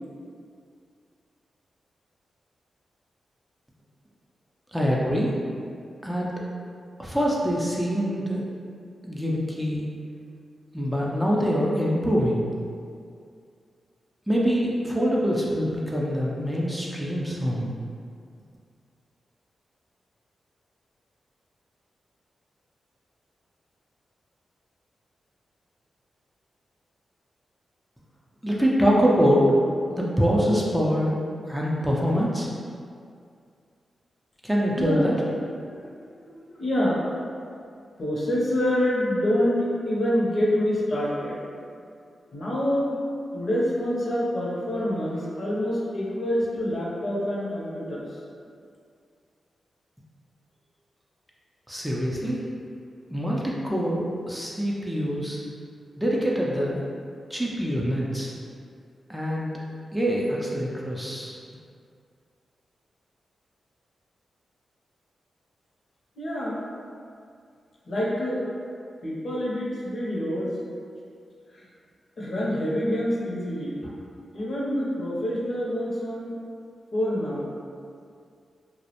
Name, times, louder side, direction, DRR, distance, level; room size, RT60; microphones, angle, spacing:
voice 1, 4.7-5.3 6.0-6.3 7.0-8.5 9.0-9.9 10.7-12.5 14.3-17.7 28.4-29.4 29.9-31.2 31.5-32.5 34.4-35.1 51.7-52.4 53.1-55.4 56.0-56.9 57.3-58.3 59.1-59.5 59.9-61.4, equal, 5° right, -4 dB, 0.4 m, -24 dB
voice 2, 35.6-37.0 38.0-41.4 42.3-43.0 43.3-48.1 66.1-66.6 67.9-68.4 69.0-70.5 71.5-71.7 72.2-73.9 74.3-76.4 76.9-77.5, equal, 60° left, -6 dB, 0.6 m, -26 dB
2.3 x 2.0 x 2.8 m, 2.3 s
cardioid pair, 60°, 0 cm